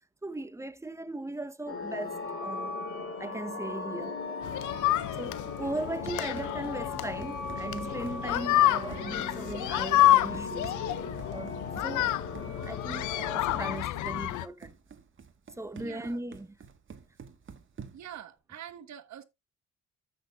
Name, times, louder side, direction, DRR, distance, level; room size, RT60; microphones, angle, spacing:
voice 1, 0.2-2.8 3.2-4.8 5.2-10.7 11.3-14.7 15.6-16.6, right 2 dB, 10° right, 0.8 m, -38 dB
sound 1, 1.7-13.8, left 4 dB, 45° left, 2.8 m, -38 dB
sound 2, 4.4-14.5, left 14 dB, 80° left, 0.6 m, -29 dB
Run, 5.7-18.2, right 6 dB, 40° right, 1.4 m, -49 dB
voice 2, 15.8-16.2 17.9-19.2, right 10 dB, 65° right, 1.3 m, -45 dB
14.5 x 6.2 x 2.3 m
cardioid pair, 90°, 30 cm